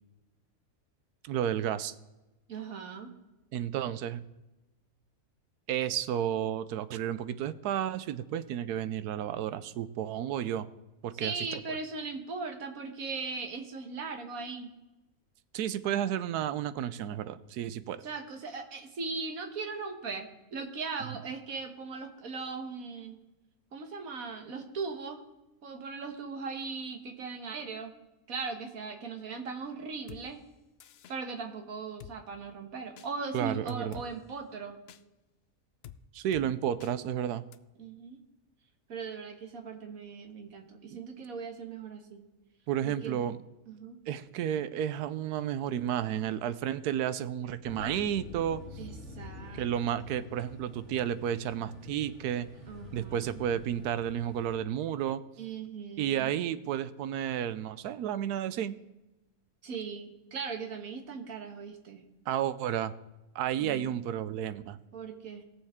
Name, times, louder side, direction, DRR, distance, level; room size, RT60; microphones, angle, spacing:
voice 1, 1.2-1.9 3.5-4.2 5.7-10.7 11.0-11.6 15.5-18.0 33.3-34.0 36.1-37.4 40.9-41.0 42.7-43.4 44.1-48.6 49.5-52.5 52.9-55.2 56.0-58.8 62.3-62.9 63.3-64.8, right 10 dB, 90° right, 14 dB, 1.1 m, -32 dB
voice 2, 2.5-3.1 11.1-14.7 18.0-23.2 23.7-25.2 25.6-27.9 28.3-30.4 31.1-34.8 37.8-38.2 38.9-42.2 42.8-43.2 43.7-44.0 48.8-50.1 52.7-53.4 55.4-56.3 59.6-62.1 64.9-65.4, right 4 dB, 65° right, 5 dB, 1.7 m, -39 dB
Drum kit, 30.1-30.2 30.8-31.2 32.0-32.2 33.0-33.1 33.7-34.1 34.9-35.0 35.8-36.0 36.3-36.5 36.8-36.9 37.5-37.6, left 11 dB, 70° left, 0.6 m, -48 dB
sound 1, 47.6-54.6, left 4 dB, 50° left, 1.6 m, -47 dB
19.5 x 7.1 x 3.6 m, 1.0 s
omnidirectional pair, 1.6 m